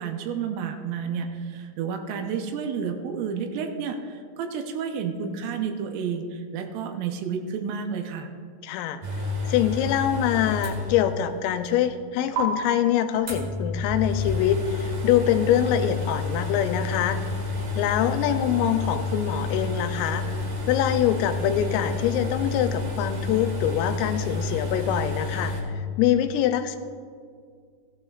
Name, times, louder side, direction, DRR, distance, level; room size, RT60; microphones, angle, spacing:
voice 1, 0.0-8.3, right 6 dB, 80° right, 4 dB, 3.2 m, -31 dB
voice 2, 8.6-9.0 9.4-17.2 17.8-20.4 20.7-26.8, left 10 dB, 85° left, 9 dB, 3.2 m, -24 dB
sound 1, 9.0-11.3 11.6-11.7 12.4-12.5 13.3-25.6, left 3 dB, 55° right, 2.4 m, -30 dB
17.0 x 12.0 x 2.4 m, 2.1 s
omnidirectional pair, 5.9 m